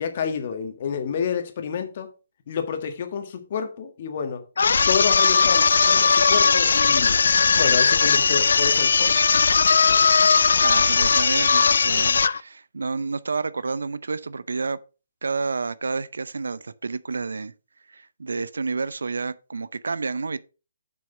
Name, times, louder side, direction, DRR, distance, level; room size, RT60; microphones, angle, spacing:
voice 1, 0.0-2.1 2.5-4.4 4.9-7.2 7.6-9.2, left 7 dB, 45° left, 1.6 m, -29 dB
sound 1, 4.6-12.4, left 5 dB, 75° left, 0.5 m, -18 dB
voice 2, 10.6-14.8 15.2-17.5 17.9-20.4, right 4 dB, 90° right, 0.6 m, -29 dB
7.0 x 6.2 x 5.5 m
hypercardioid pair, 160°, 0 cm